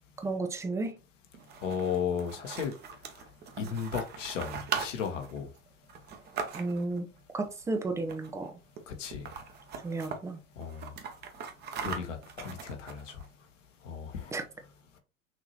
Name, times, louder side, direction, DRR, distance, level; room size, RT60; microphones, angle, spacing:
voice 1, 0.2-0.9 6.5-7.1 7.3-8.5 9.8-10.4 14.3-14.4, right 3 dB, 5° right, 0.5 m, -33 dB
sound 1, 1.3-7.0 8.0-8.5 8.8-8.9 9.1-10.2 10.6-13.3, right 6 dB, 25° right, 0.8 m, -40 dB
voice 2, 1.6-2.7 3.0-3.3 3.6-5.5 8.9-9.3 10.5-11.0 11.8-13.3 13.8-14.4, left 7 dB, 60° left, 1.3 m, -35 dB
6.0 x 2.9 x 2.9 m
figure-of-eight pair, 95°, 41 cm